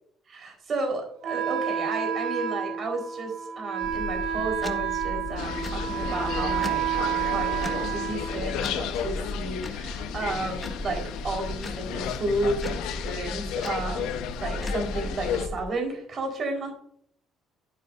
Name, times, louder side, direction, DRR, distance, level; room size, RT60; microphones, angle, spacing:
voice 1, 0.3-16.7, right 2 dB, 40° right, 2 dB, 4.4 m, -32 dB
Wind instrument woodwind instrument, 1.2-9.0, right 8 dB, 80° right, 2.7 m, -30 dB
sound 1, 3.8-15.6, left 2 dB, 20° left, 1.4 m, -36 dB
sound 2, 5.4-15.5, left 9 dB, 90° left, 1.2 m, -34 dB
11.5 x 10.5 x 2.6 m, 0.64 s
cardioid pair, 120°, 0 cm